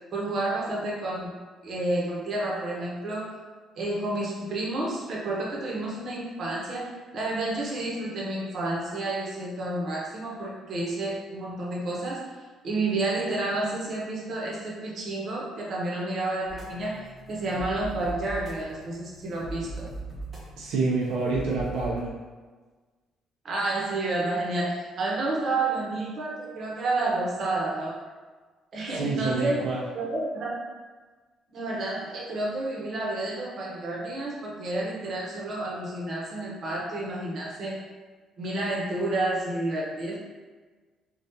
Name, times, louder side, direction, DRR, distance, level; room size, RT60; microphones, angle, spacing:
voice 1, 0.1-1.3 1.6-3.4 3.8-12.4 12.6-19.9 23.4-28.0 28.7-30.6 31.5-37.8 38.4-40.2, right 2 dB, 50° right, -4 dB, 0.9 m, -30 dB
sound 1, 16.5-22.0, right 3 dB, 25° right, 0.9 m, -40 dB
voice 2, 20.6-22.2 28.9-29.8, right 3 dB, 90° right, -5 dB, 0.5 m, -27 dB
3.5 x 2.3 x 2.7 m, 1.4 s
cardioid pair, 105°, 0 cm